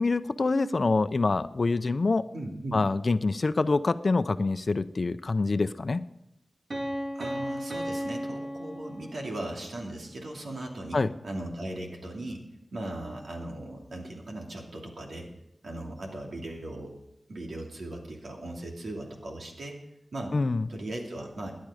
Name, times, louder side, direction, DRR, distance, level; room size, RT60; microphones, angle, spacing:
voice 1, 0.0-2.2 2.7-6.0 10.9-11.1 20.3-20.7, left 3 dB, 60° left, 13 dB, 0.7 m, -26 dB
voice 2, 2.3-2.9 7.1-12.4 12.7-15.3 15.6-16.9 17.3-19.8 20.1-20.3 20.7-21.5, right 1 dB, 90° right, 0 dB, 2.7 m, -38 dB
Piano, 6.7-9.5, equal, 55° right, 3.2 m, -34 dB
18.0 x 10.5 x 5.0 m, 0.86 s
cardioid pair, 45°, 0 cm